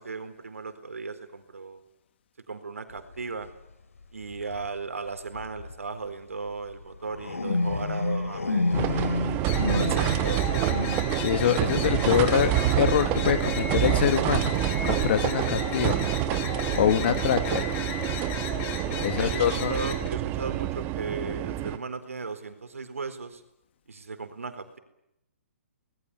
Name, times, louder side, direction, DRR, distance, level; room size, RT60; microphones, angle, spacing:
voice 1, 0.0-1.8 2.5-3.5 4.1-9.1 9.5-10.8 19.2-23.4 23.9-24.8, right 4 dB, 80° right, 9 dB, 4.2 m, -36 dB
sound 1, 3.0-3.1 4.2-4.7 5.3-5.7 6.5-16.1, left 3 dB, 80° left, 3.8 m, -32 dB
sound 2, 8.7-21.8, right 13 dB, 25° right, 1.4 m, -27 dB
sound 3, 9.4-20.1, left 8 dB, 25° left, 3.2 m, -36 dB
voice 2, 11.2-14.5 14.8-16.0 16.7-17.7 19.0-19.8, left 9 dB, 50° left, 10 dB, 1.9 m, -25 dB
25.0 x 20.0 x 9.7 m, 0.82 s
figure-of-eight pair, 135°, 7 cm